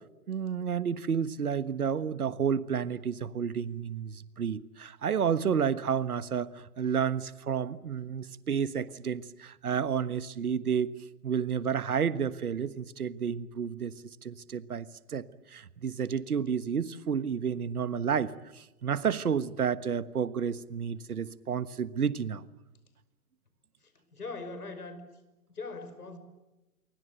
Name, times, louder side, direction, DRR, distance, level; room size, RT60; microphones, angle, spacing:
voice 1, 0.3-10.9 11.2-13.9 14.2-22.4, right 7 dB, 70° right, 16 dB, 1.4 m, -31 dB
voice 2, 24.1-25.0 25.5-26.2, left 3 dB, 75° left, 10 dB, 5.6 m, -40 dB
28.0 x 23.5 x 8.0 m, 1.0 s
figure-of-eight pair, 120°, 46 cm